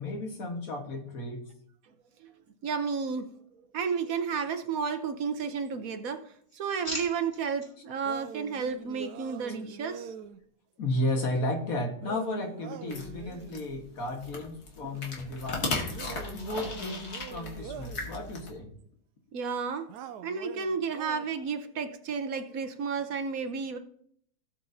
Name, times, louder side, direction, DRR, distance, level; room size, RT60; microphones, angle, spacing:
voice 1, 0.0-1.5 10.8-15.9 16.2-18.7, left 1 dB, 65° left, 2 dB, 1.9 m, -33 dB
voice 2, 2.6-3.3 3.7-6.2 6.5-10.1 14.8-15.0 19.3-19.9 20.2-23.8, right 5 dB, 65° right, 7 dB, 1.2 m, -32 dB
sound 1, 3.8-4.9 5.2-5.9 6.3-7.7 8.3-8.6, equal, 20° left, 3.2 m, -43 dB
sound 2, 8.0-10.4 12.0-13.7 15.9-18.1 19.9-21.5, right 8 dB, 90° right, 1.2 m, -44 dB
sound 3, 12.9-18.5, left 3 dB, 80° left, 2.3 m, -37 dB
16.5 x 7.8 x 2.7 m, 0.65 s
omnidirectional pair, 1.7 m